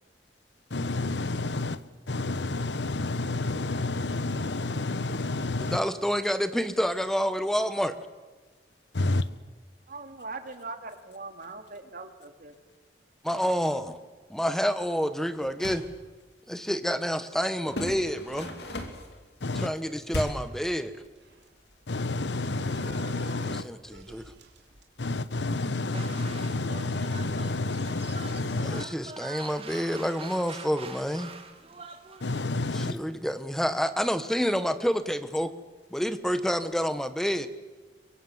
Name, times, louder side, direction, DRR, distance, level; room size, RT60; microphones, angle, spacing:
voice 1, 0.7-1.8 2.1-5.8 8.9-9.3 19.4-19.7 21.9-23.7 25.0-28.9 32.2-33.0, left 2 dB, 85° left, 15 dB, 1.1 m, -30 dB
voice 2, 5.6-7.9 13.2-14.0 14.3-15.8 16.5-18.5 19.5-21.0 23.5-24.3 28.6-31.3 32.7-35.5 35.9-37.5, equal, 5° left, 11 dB, 1.1 m, -28 dB
voice 3, 9.9-12.5, right 3 dB, 55° right, 7 dB, 2.4 m, -41 dB
sound 1, 15.4-15.9 17.7-19.1 20.1-20.6, left 1 dB, 70° left, 2.7 m, -35 dB
sound 2, 19.6-24.8, right 2 dB, 75° right, 3.1 m, -50 dB
sound 3, 25.9-32.4, right 5 dB, 35° right, 2.1 m, -45 dB
23.5 x 22.5 x 8.0 m, 1.3 s
head